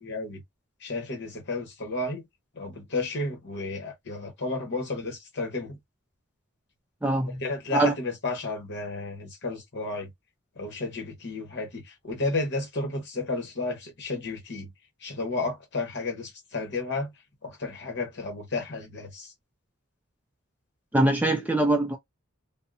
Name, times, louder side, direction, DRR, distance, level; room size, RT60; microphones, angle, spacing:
voice 1, 0.0-0.4 0.8-2.3 2.5-5.8 7.2-10.1 10.5-14.7 15.0-17.1 17.4-19.3, left 3 dB, 50° left, 1.0 m, -32 dB
voice 2, 20.9-22.0, right 1 dB, 5° right, 0.3 m, -22 dB
2.6 x 2.0 x 2.4 m
head